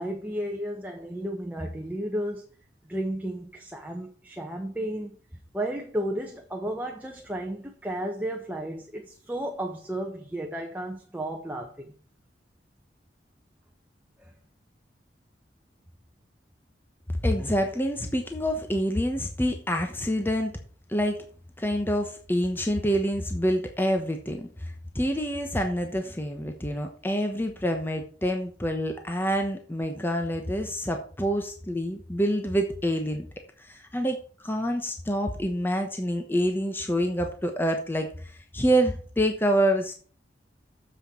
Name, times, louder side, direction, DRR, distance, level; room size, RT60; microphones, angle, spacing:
voice 1, 0.0-2.5 2.9-5.2 5.5-11.9 14.2-14.3, right 1 dB, 10° right, 1.2 m, -33 dB
voice 2, 17.2-20.5 20.9-21.2 21.6-33.3 33.6-39.9, equal, 10° left, 1.1 m, -27 dB
7.4 x 6.5 x 7.7 m
head